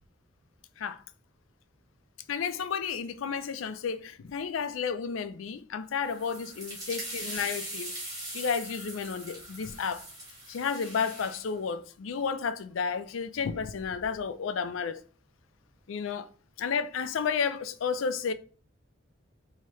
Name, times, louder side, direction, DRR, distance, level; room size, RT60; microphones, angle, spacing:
voice 1, 2.3-7.9 8.3-10.1 10.5-15.0 15.9-16.3 16.6-18.3, left 6 dB, 85° left, 0.4 m, -32 dB
sound 1, 6.0-11.4, right 1 dB, 20° right, 1.7 m, -41 dB
4.7 x 2.8 x 3.1 m
head